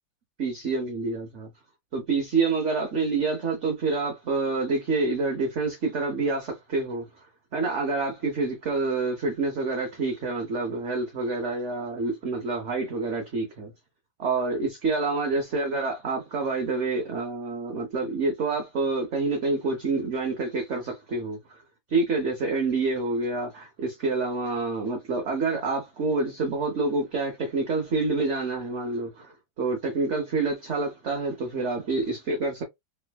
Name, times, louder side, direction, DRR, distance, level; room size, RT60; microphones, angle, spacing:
voice 1, 0.4-1.5 1.9-7.1 7.5-13.7 14.2-21.4 21.9-32.6, right 3 dB, 55° right, 0.8 m, -27 dB
3.3 x 3.0 x 2.2 m
omnidirectional pair, 2.1 m